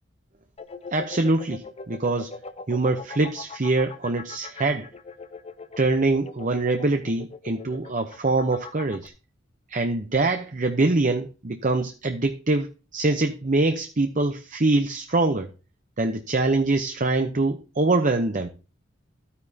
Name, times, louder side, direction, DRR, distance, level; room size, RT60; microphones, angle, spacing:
sound 1, 0.6-9.1, left 4 dB, 30° left, 0.6 m, -41 dB
voice 1, 0.9-2.3 2.7-4.9 5.8-9.1 9.7-15.5 16.0-18.5, right 2 dB, 40° right, 0.8 m, -24 dB
13.0 x 9.7 x 2.8 m
head